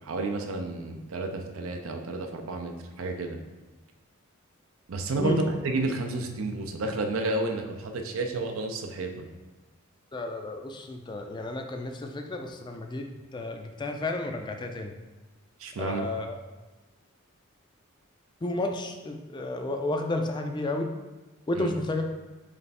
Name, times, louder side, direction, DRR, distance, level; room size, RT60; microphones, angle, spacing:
voice 1, 0.0-3.4 4.9-9.3 15.6-16.1 21.5-21.7, right 2 dB, 75° right, 4 dB, 0.5 m, -31 dB
voice 2, 10.1-13.1 13.3-14.9 15.8-16.4 18.4-20.9 21.5-22.0, left 2 dB, 20° left, 4 dB, 0.3 m, -32 dB
3.4 x 3.3 x 4.1 m, 1.1 s
head